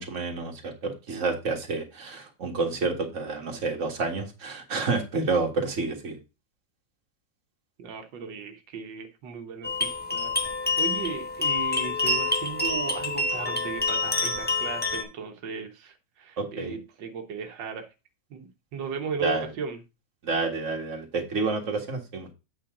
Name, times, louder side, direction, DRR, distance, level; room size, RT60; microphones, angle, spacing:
voice 1, 0.0-6.2 16.4-16.8 19.2-19.5 20.2-22.3, right 3 dB, 45° right, 2.0 m, -29 dB
voice 2, 7.8-17.9 18.3-19.8, right 5 dB, 90° right, 1.7 m, -36 dB
sound 1, 9.6-15.0, left 3 dB, 5° left, 1.0 m, -27 dB
8.6 x 5.7 x 3.7 m
omnidirectional pair, 1.9 m